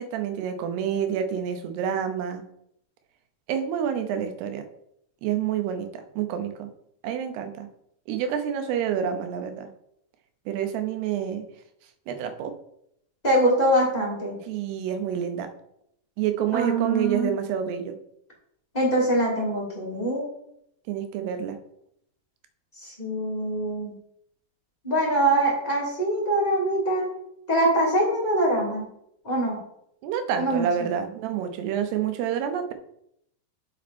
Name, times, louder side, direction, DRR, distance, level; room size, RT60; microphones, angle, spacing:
voice 1, 0.0-2.4 3.5-4.6 5.2-6.7 7.0-7.7 8.1-9.7 10.5-11.5 12.1-12.5 14.5-15.5 16.2-18.0 20.9-21.6 30.0-32.7, right 9 dB, 85° right, 8 dB, 2.9 m, -28 dB
voice 2, 13.2-14.4 16.5-17.3 18.7-20.2 22.8-23.9 24.8-27.1 27.5-28.8 29.2-29.6 30.4-30.9, right 1 dB, 10° left, -5 dB, 2.3 m, -23 dB
7.4 x 6.4 x 4.3 m, 0.75 s
omnidirectional pair, 4.7 m